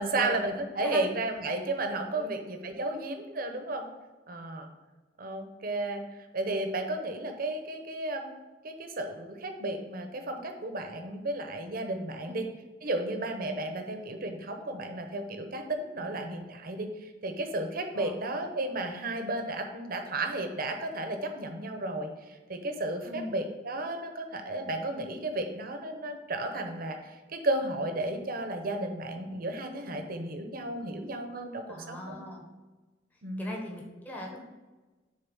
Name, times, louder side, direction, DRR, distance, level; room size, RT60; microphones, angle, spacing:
voice 1, 0.0-3.9 4.3-4.7 5.2-6.0 6.3-8.4 8.6-12.5 12.8-16.9 17.2-22.1 22.5-27.0 27.3-32.2 33.2-33.5, right 2 dB, 55° right, 5 dB, 0.9 m, -33 dB
voice 2, 31.7-32.4 33.4-34.4, equal, 10° left, -2 dB, 1.2 m, -39 dB
6.8 x 3.9 x 5.5 m, 1.2 s
head